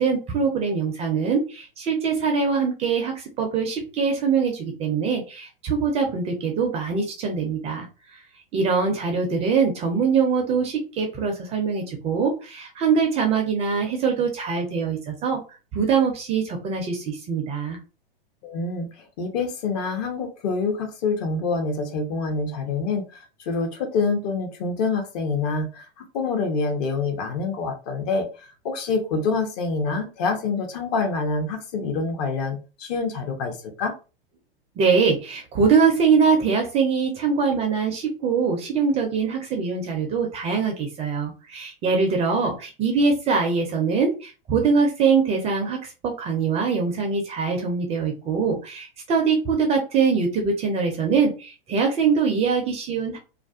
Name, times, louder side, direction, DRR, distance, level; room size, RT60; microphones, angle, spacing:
voice 1, 0.0-7.9 8.5-15.4 15.7-17.8 34.8-53.2, right 5 dB, 20° right, 3 dB, 0.4 m, -23 dB
voice 2, 18.4-18.9 19.2-23.0 23.5-28.3 28.6-33.9, left 4 dB, 45° left, 4 dB, 0.7 m, -26 dB
2.4 x 2.2 x 2.3 m, 0.32 s
figure-of-eight pair, 95°, 29 cm